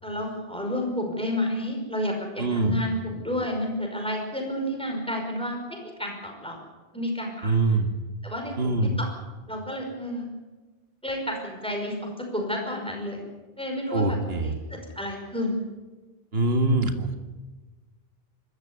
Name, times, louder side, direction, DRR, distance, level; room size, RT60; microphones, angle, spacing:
voice 1, 0.0-6.6 6.9-7.8 8.2-9.1 9.5-10.2 11.0-13.2 13.6-15.6 16.7-16.9, left 1 dB, 5° left, 2 dB, 5.5 m, -31 dB
voice 2, 2.4-2.8 7.4-7.9 8.6-9.0 13.9-14.5 16.3-17.1, right 2 dB, 75° right, 7 dB, 2.1 m, -24 dB
25.0 x 14.0 x 9.8 m, 1.2 s
omnidirectional pair, 1.0 m